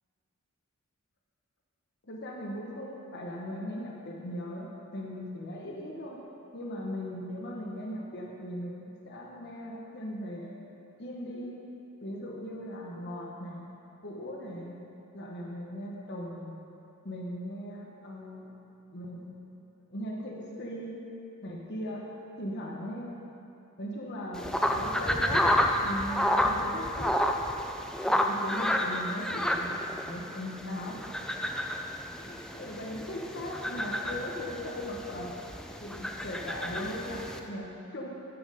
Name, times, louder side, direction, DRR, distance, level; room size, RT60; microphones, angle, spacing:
voice 1, 2.0-6.2 6.5-10.5 11.0-11.6 12.0-13.6 14.0-14.7 15.1-16.6 17.0-18.5 18.9-21.0 21.4-22.0 22.4-23.2 23.8-25.4 25.8-27.2 28.0-31.0 32.2-35.3 35.8-38.1, equal, 50° left, -2 dB, 1.1 m, -38 dB
sound 1, 24.3-37.4, left 1 dB, 5° left, 0.4 m, -30 dB
13.0 x 6.1 x 5.0 m, 2.9 s
head